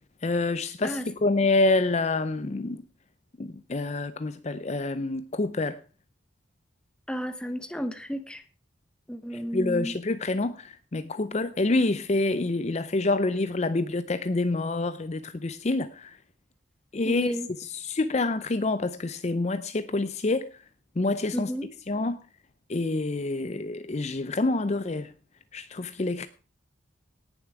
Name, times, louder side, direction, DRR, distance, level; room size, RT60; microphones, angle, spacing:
voice 1, 0.2-2.8 3.4-5.8 9.5-16.2 16.9-17.3 17.6-20.5 21.0-21.5 21.9-22.2 22.7-25.1 25.5-26.3, left 2 dB, 35° left, 0.5 m, -27 dB
voice 2, 7.1-8.4 9.1-10.0 17.0-17.5 21.3-21.7, equal, 5° left, 0.9 m, -32 dB
18.5 x 7.2 x 4.8 m
head